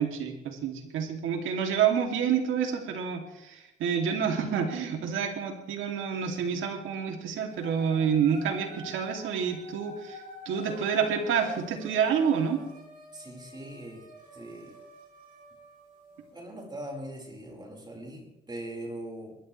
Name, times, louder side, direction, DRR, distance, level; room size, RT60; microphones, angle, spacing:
voice 1, 0.0-10.2 10.5-12.6, right 7 dB, 85° right, 3 dB, 2.6 m, -28 dB
sound 1, 7.5-16.3, right 1 dB, 45° right, 4.8 m, -48 dB
voice 2, 13.1-14.0 14.3-14.8 16.3-19.4, right 1 dB, 20° right, 0 dB, 4.7 m, -41 dB
22.0 x 12.5 x 3.3 m, 0.96 s
cardioid pair, 90°, 20 cm